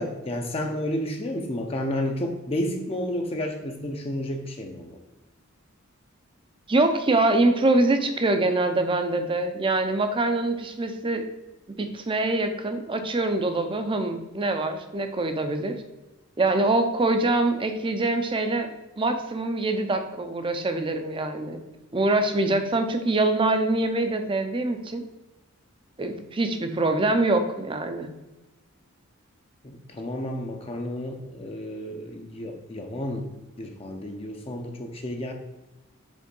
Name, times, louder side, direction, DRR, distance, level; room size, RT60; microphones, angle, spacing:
voice 1, 0.0-5.0 29.6-33.3 33.6-35.3, left 1 dB, 25° left, 3 dB, 0.6 m, -31 dB
voice 2, 6.7-11.3 11.8-15.8 16.4-18.7 19.0-21.6 21.9-25.0 26.0-28.1, right 2 dB, 25° right, 7 dB, 0.5 m, -24 dB
5.2 x 3.8 x 5.2 m, 1.0 s
head